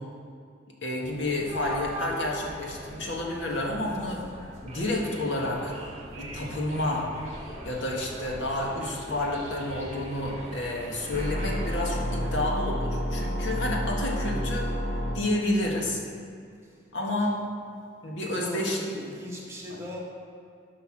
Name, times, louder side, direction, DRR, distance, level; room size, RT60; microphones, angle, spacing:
voice 1, 0.8-4.2 4.6-5.7 6.1-7.1 7.6-14.7 15.1-16.0 16.9-17.4 18.0-18.8, left 1 dB, 80° left, -2 dB, 1.8 m, -30 dB
sound 1, 1.0-12.5, right 1 dB, 40° right, 2.0 m, -40 dB
sound 2, 11.1-15.1, equal, 65° left, 1.4 m, -29 dB
voice 2, 18.3-20.0, left 1 dB, 15° right, -4 dB, 1.6 m, -39 dB
11.5 x 5.8 x 6.2 m, 2.3 s
head